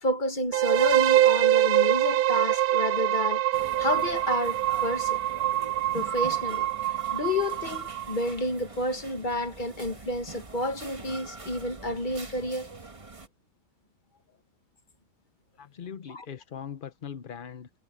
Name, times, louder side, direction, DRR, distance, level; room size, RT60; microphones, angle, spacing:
voice 1, 0.0-3.4 3.8-5.2 5.9-12.7 16.1-16.2, left 2 dB, 30° left, 1.6 m, -30 dB
sound 1, 0.5-8.3, right 14 dB, 70° right, 1.1 m, -24 dB
ambiance sonore magasin près de la caisse, 3.5-13.3, right 3 dB, 20° right, 1.3 m, -44 dB
voice 2, 15.6-17.7, left 8 dB, 50° left, 0.6 m, -40 dB
omnidirectional pair, 1.8 m